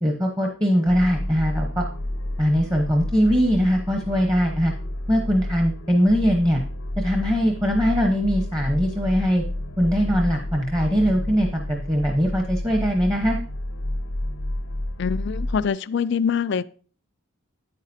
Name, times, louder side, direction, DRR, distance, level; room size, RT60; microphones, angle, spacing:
voice 1, 0.0-1.9 2.4-4.7 5.1-6.6 7.0-9.4 9.8-13.4, equal, 15° right, 1.0 m, -21 dB
sound 1, 0.9-15.7, left 1 dB, 80° left, 0.8 m, -30 dB
voice 2, 15.0-16.6, left 6 dB, 55° left, 0.3 m, -24 dB
9.3 x 8.9 x 2.7 m
head